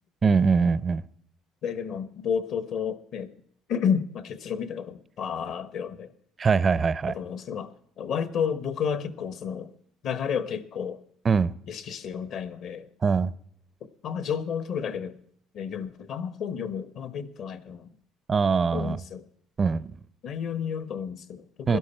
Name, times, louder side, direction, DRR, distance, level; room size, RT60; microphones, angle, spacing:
voice 1, 0.2-1.0 6.4-7.1 11.2-11.5 13.0-13.3 18.3-19.0 19.6-20.0 21.7-21.8, right 5 dB, 25° right, 0.4 m, -22 dB
voice 2, 1.6-3.3 3.7-6.1 7.1-9.7 10.0-11.0 11.7-12.9 13.8-15.2 15.5-17.9 18.7-19.2 20.2-21.8, left 7 dB, 55° left, 1.0 m, -31 dB
17.0 x 12.5 x 4.4 m
cardioid pair, 145°, 0 cm